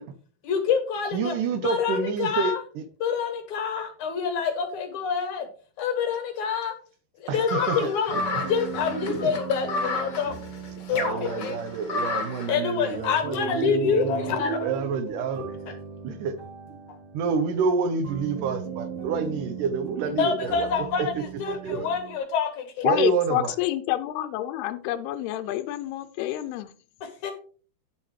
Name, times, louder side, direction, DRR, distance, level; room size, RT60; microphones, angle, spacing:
voice 1, 0.4-1.4 1.6-2.6 3.0-5.5 5.8-6.7 7.2-10.3 10.9-11.6 12.5-14.7 20.1-21.1 21.4-23.1 27.2-27.3, left 6 dB, 70° left, 8 dB, 1.9 m, -27 dB
voice 2, 1.1-2.8 7.3-8.2 9.0-9.3 10.9-15.4 16.0-16.4 17.1-21.9 22.8-23.6, right 5 dB, 75° right, 10 dB, 2.0 m, -28 dB
sound 1, 7.5-12.5, left 3 dB, 55° left, 1.2 m, -31 dB
sound 2, 8.1-22.2, right 7 dB, 60° right, 1.4 m, -38 dB
voice 3, 22.8-26.7, left 14 dB, 90° left, 8 dB, 2.6 m, -28 dB
9.1 x 8.5 x 3.2 m, 0.41 s
omnidirectional pair, 4.5 m